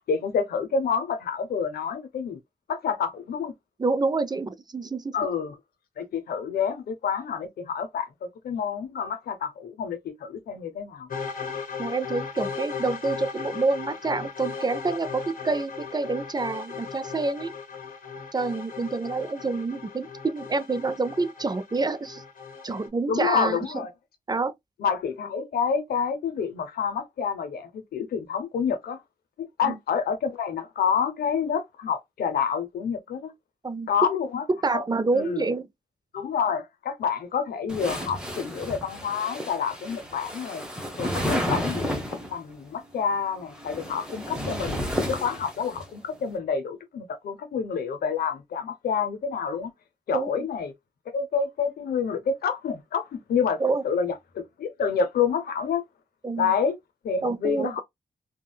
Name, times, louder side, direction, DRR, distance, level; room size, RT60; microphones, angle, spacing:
voice 1, 0.1-2.4 2.7-3.5 5.1-5.5 6.0-11.1 23.1-23.9 24.8-29.0 29.4-33.3 33.9-34.4 34.7-34.8 35.1-35.5 36.1-40.6 41.0-42.0 42.3-49.7 50.1-50.7 51.1-55.8 56.4-56.8 57.0-57.8, left 6 dB, 90° left, 0.6 m, -28 dB
voice 2, 3.8-5.1 11.8-17.5 18.3-22.2 22.6-23.8 24.3-24.5 29.6-29.8 33.6-33.9 34.5-35.7 50.1-50.5 53.6-53.8 56.2-56.5 57.2-57.8, right 3 dB, 25° right, 0.4 m, -27 dB
sound 1, 11.1-22.9, left 5 dB, 60° left, 1.0 m, -37 dB
sound 2, 37.7-42.4 43.4-45.8, equal, 5° right, 1.1 m, -31 dB
3.6 x 2.2 x 2.2 m
cardioid pair, 60°, 15 cm